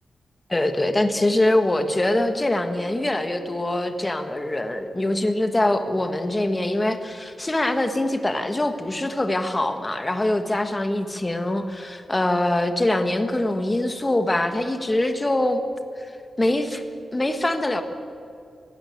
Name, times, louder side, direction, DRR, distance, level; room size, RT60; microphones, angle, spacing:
voice 1, 0.5-15.6 16.0-16.1 16.4-16.8 17.1-17.8, left 1 dB, 15° left, 8 dB, 1.4 m, -23 dB
16.5 x 16.0 x 9.9 m, 2.5 s
wide cardioid pair, 165°, 0 cm